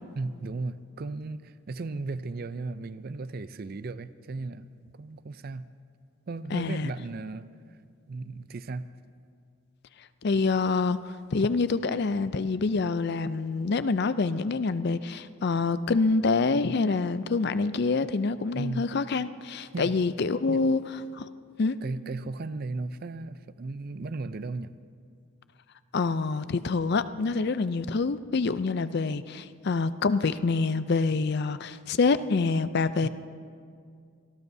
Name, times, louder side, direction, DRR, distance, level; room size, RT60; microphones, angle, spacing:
voice 1, 0.2-5.7 6.3-7.5 8.1-8.9 18.5-18.9 19.7-20.0 20.5-20.6 21.8-24.7 33.0-33.1, right 3 dB, 45° right, 14 dB, 0.4 m, -35 dB
voice 2, 6.5-6.9 10.2-11.0 11.3-20.8 21.2-21.3 21.6-21.8 25.9-33.1, left 4 dB, 50° left, 13 dB, 0.4 m, -26 dB
25.0 x 19.0 x 2.7 m, 2.2 s
head